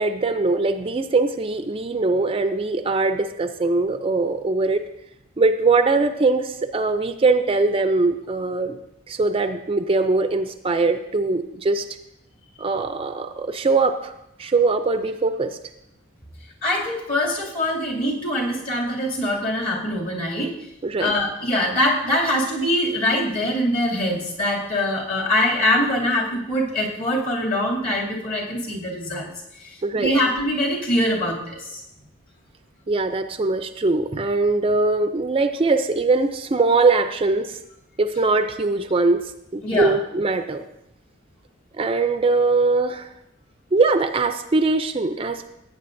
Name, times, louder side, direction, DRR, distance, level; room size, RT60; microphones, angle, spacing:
voice 1, 0.0-4.8 5.4-8.8 9.1-11.9 12.6-14.1 14.4-15.6 20.8-21.1 29.8-30.1 32.9-37.6 38.0-40.6 41.7-43.1 43.7-45.5, right 3 dB, 30° right, 9 dB, 0.4 m, -21 dB
voice 2, 16.6-20.5 21.0-29.3 29.6-31.8 39.6-40.0, left 1 dB, 45° left, -3 dB, 2.5 m, -23 dB
15.5 x 9.0 x 2.6 m, 0.85 s
head